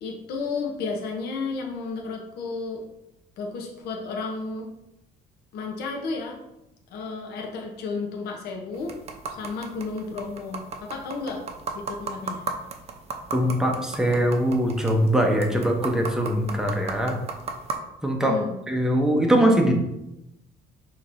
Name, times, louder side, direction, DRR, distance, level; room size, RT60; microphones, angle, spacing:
voice 1, 0.0-2.8 3.4-4.7 5.5-6.4 6.9-9.0 9.4-11.4 11.7-12.4 18.2-18.6, left 4 dB, 70° left, 2 dB, 0.7 m, -32 dB
sound 1, 8.7-17.7, right 4 dB, 40° right, 0.5 m, -37 dB
voice 2, 13.3-17.2 18.0-18.4 18.7-19.7, equal, 5° right, 1 dB, 0.7 m, -22 dB
5.8 x 2.9 x 2.5 m, 0.88 s
cardioid pair, 110°, 17 cm